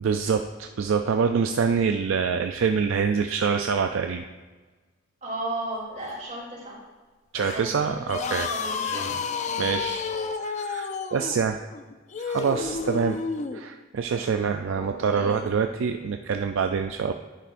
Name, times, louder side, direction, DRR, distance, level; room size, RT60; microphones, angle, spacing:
voice 1, 0.0-4.3 7.3-8.5 9.6-10.1 10.4-11.6 12.2-13.2 13.5-17.1, right 6 dB, 65° right, 6 dB, 0.4 m, -25 dB
voice 2, 5.2-6.8 7.5-9.1 9.5-9.7 14.6-15.4, right 1 dB, 35° right, -4 dB, 2.9 m, -35 dB
sound 1, 5.7-6.1 7.3-7.7 8.5-9.3 10.4-10.5, left 2 dB, 70° left, 1.2 m, -39 dB
sound 2, 8.1-13.6, left 5 dB, 35° left, 0.4 m, -30 dB
10.0 x 10.0 x 2.5 m, 1.3 s
head